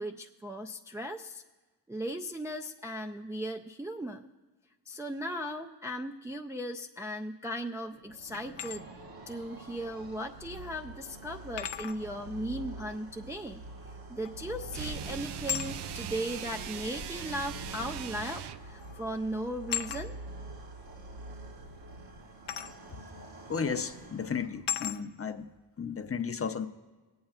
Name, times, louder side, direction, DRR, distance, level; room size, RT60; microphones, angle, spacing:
voice 1, 0.0-1.4 1.9-4.3 4.9-8.8 9.3-13.6 14.1-20.2, equal, 10° right, 2 dB, 0.4 m, -37 dB
sound 1, 7.9-24.9, right 2 dB, 60° right, 1.3 m, -46 dB
sound 2, 8.3-8.8 10.3-10.4 11.6-12.0 14.2-14.6 15.5-15.7 16.9-17.0 18.3-18.5 18.8-19.0 19.7-20.0 22.5-22.7 23.5-23.7 24.7-25.0, left 9 dB, 90° left, 0.7 m, -35 dB
sound 3, 14.7-18.7, right 10 dB, 75° right, 0.5 m, -40 dB
voice 2, 23.5-25.5 25.8-26.7, left 6 dB, 35° left, 7 dB, 0.6 m, -34 dB
23.0 x 8.6 x 2.4 m, 1.2 s
wide cardioid pair, 100°, 41 cm